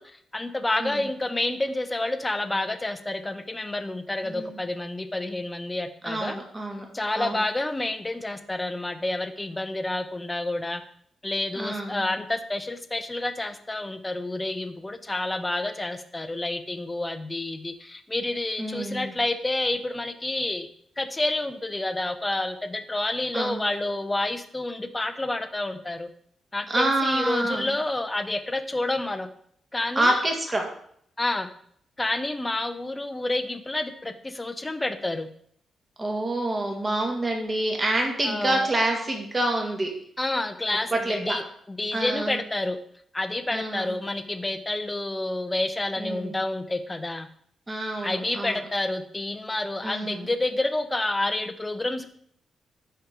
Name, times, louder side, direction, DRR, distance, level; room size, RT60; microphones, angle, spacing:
voice 1, 0.0-6.4 6.9-10.8 11.2-20.7 21.0-26.1 26.5-29.3 29.7-30.2 31.2-31.5 32.0-35.3 38.2-38.7 40.2-42.8 43.1-47.3 48.0-52.1, left 2 dB, 15° left, 9 dB, 0.8 m, -29 dB
voice 2, 4.2-4.6 6.0-6.9 7.2-7.4 11.6-12.1 18.6-19.1 23.3-23.6 26.7-27.7 30.0-30.7 36.0-39.9 40.9-41.4 41.9-42.4 43.5-44.0 46.0-46.4 47.7-48.6 49.8-50.3, right 1 dB, 25° right, 1 dB, 2.0 m, -27 dB
11.5 x 4.6 x 5.1 m, 0.66 s
cardioid pair, 115°, 0 cm